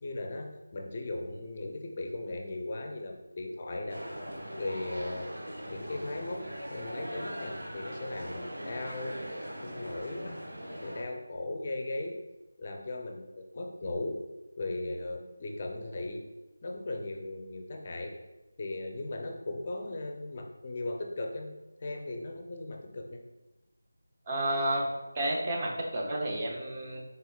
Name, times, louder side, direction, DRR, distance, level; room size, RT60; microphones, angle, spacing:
voice 1, 0.0-4.0 4.5-5.3 5.6-9.1 9.5-10.4 10.8-12.2 12.6-14.2 14.6-16.2 16.6-18.1 18.6-21.5 21.8-23.2, left 2 dB, 35° left, 3 dB, 0.4 m, -37 dB
sound 1, 3.9-11.0, equal, 85° right, 1.0 m, -41 dB
voice 2, 24.3-24.9 25.1-27.0, right 1 dB, 30° right, -1 dB, 0.7 m, -31 dB
4.1 x 3.8 x 2.3 m, 1.0 s
figure-of-eight pair, 165°, 0 cm